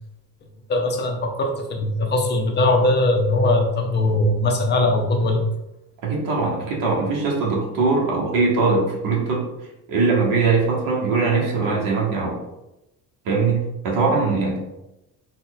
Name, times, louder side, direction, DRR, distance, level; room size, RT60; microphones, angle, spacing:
voice 1, 0.7-5.4, left 2 dB, 30° left, 3 dB, 0.7 m, -20 dB
voice 2, 6.0-9.4 9.9-12.4 13.2-14.6, right 4 dB, 60° right, -2 dB, 1.3 m, -21 dB
4.3 x 2.4 x 4.1 m, 0.93 s
cardioid pair, 140°, 36 cm